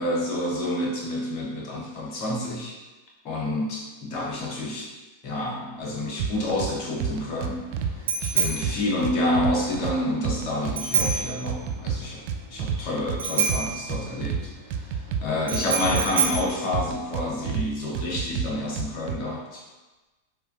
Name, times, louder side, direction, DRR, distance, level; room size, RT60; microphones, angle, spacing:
voice 1, 0.0-2.7 3.2-4.9 5.2-7.7 8.2-12.2 12.5-14.5 14.8-15.0 15.2-19.6, left 1 dB, 40° left, -2 dB, 0.9 m, -28 dB
sound 1, 6.2-6.7 7.0-7.9 8.2-9.9 10.2-11.2 11.5-13.2 13.5-14.4 14.7-16.4 16.7-17.7 17.9-19.2, right 7 dB, 45° right, 0.3 m, -28 dB
Bicycle bell, 6.4-17.5, right 5 dB, 65° right, 0.9 m, -30 dB
6.7 x 2.3 x 2.5 m, 1.1 s
figure-of-eight pair, 90°, 0 cm